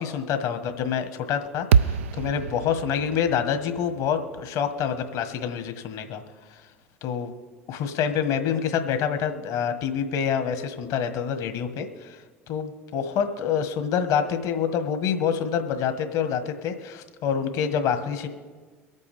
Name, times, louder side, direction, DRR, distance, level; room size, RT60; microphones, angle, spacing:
voice 1, 0.0-6.2 6.5-6.6 7.0-7.3 7.7-12.2 12.5-18.3, left 7 dB, 60° left, 8 dB, 1.6 m, -27 dB
sound 1, 1.7-6.0, right 7 dB, 75° right, 0.4 m, -27 dB
23.5 x 8.5 x 3.6 m, 1.5 s
figure-of-eight pair, 65°, 7 cm